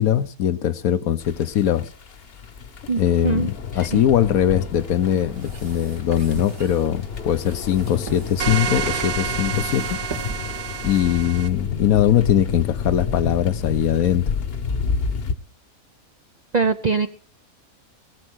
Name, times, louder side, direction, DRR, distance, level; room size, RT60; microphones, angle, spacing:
voice 1, 0.0-1.9 3.0-10.0 10.8-14.2, left 11 dB, 75° left, 1.3 m, -21 dB
sound 1, 1.2-15.3, left 6 dB, 45° left, 1.1 m, -30 dB
voice 2, 2.9-4.0 16.5-17.1, right 5 dB, 45° right, 0.5 m, -23 dB
sound 2, 4.8-11.0, right 3 dB, 65° right, 2.7 m, -39 dB
sound 3, 8.4-11.5, right 8 dB, 90° right, 1.4 m, -28 dB
18.0 x 7.6 x 6.2 m
omnidirectional pair, 1.5 m